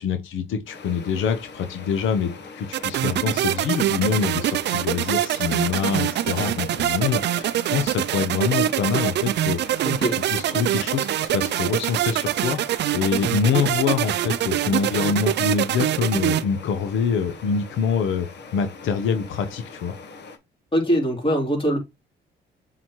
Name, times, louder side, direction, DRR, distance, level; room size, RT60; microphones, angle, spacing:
voice 1, 0.0-9.9 10.1-18.3 18.5-19.9, left 6 dB, 80° left, 0.9 m, -25 dB
sound 1, 0.7-20.4, left 4 dB, 60° left, 1.4 m, -42 dB
sound 2, 2.7-16.4, right 12 dB, 60° right, 0.4 m, -24 dB
voice 2, 9.8-10.2 20.7-21.8, equal, 25° left, 3.4 m, -22 dB
7.3 x 4.2 x 3.1 m
cardioid pair, 90°, 20 cm